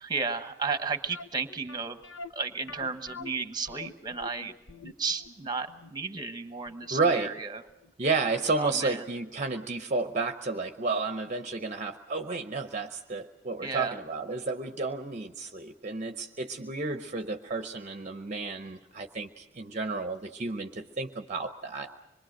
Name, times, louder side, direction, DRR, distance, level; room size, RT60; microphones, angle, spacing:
voice 1, 0.0-2.0 2.3-4.5 5.0-7.6 8.6-9.0 13.6-14.0, right 4 dB, 20° right, 9 dB, 1.1 m, -33 dB
sound 1, 1.1-7.9 8.2-8.3 8.9-9.0 9.3-9.4, left 4 dB, 75° left, 1.0 m, -46 dB
voice 2, 6.9-7.3 8.0-22.0, right 3 dB, 40° right, 7 dB, 0.8 m, -31 dB
26.0 x 22.5 x 6.4 m, 0.96 s
head